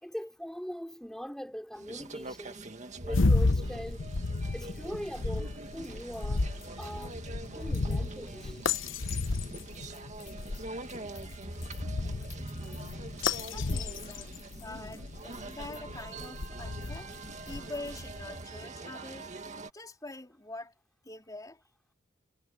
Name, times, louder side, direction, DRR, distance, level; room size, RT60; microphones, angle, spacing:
voice 1, 0.0-2.7 3.0-4.0 4.5-6.4 6.8-7.2 7.6-8.7, equal, 5° left, 3.7 m, -41 dB
sound 1, 1.7-19.7, right 2 dB, 40° right, 2.0 m, -44 dB
sound 2, 3.0-18.2, left 3 dB, 85° left, 0.9 m, -33 dB
voice 2, 13.5-17.2 17.5-19.3 19.7-20.7 21.0-21.6, left 2 dB, 20° left, 3.6 m, -44 dB
head